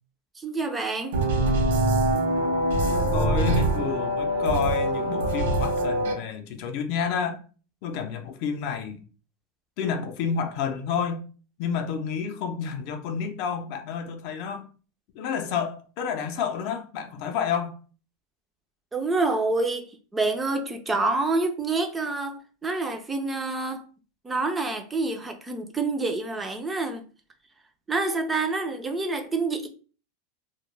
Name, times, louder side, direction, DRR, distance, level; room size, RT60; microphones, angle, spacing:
voice 1, 0.4-1.2 18.9-23.8 24.2-27.0 27.9-29.7, right 3 dB, 15° right, 0.3 m, -27 dB
sound 1, 1.1-6.1, right 1 dB, 80° right, 0.6 m, -24 dB
voice 2, 3.1-7.4 7.8-9.0 9.8-11.2 11.6-14.7 15.1-17.8, left 6 dB, 55° left, 0.4 m, -29 dB
2.2 x 2.0 x 3.1 m
supercardioid pair, 140°, 0 cm